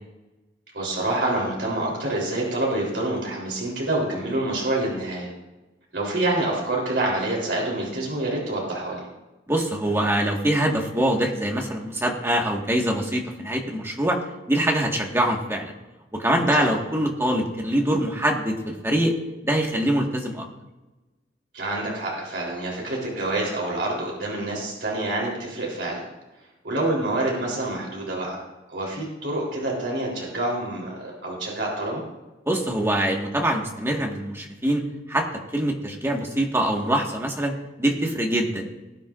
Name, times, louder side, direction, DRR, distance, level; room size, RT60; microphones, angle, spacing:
voice 1, 0.7-5.3 5.9-9.1 16.6-16.7 21.5-26.1 26.6-28.4 28.7-32.0, right 2 dB, 65° right, -3 dB, 3.7 m, -27 dB
voice 2, 9.5-14.2 14.5-15.7 16.1-19.1 19.4-20.4 32.5-34.8 35.1-35.3 35.5-38.7, right 1 dB, 15° right, 0 dB, 1.7 m, -24 dB
20.0 x 9.3 x 2.6 m, 1.1 s
head